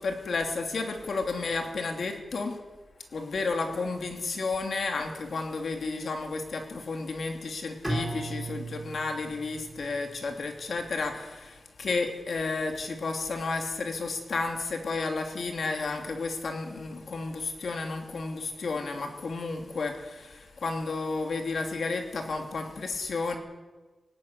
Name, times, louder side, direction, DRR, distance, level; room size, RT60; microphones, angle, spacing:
voice 1, 0.0-2.6 3.1-23.4, left 3 dB, 60° left, 4 dB, 2.9 m, -32 dB
Bowed string instrument, 7.8-10.9, right 2 dB, ahead, 4.5 m, -37 dB
18.5 x 17.5 x 9.7 m, 1.3 s
wide cardioid pair, 175°, 0 cm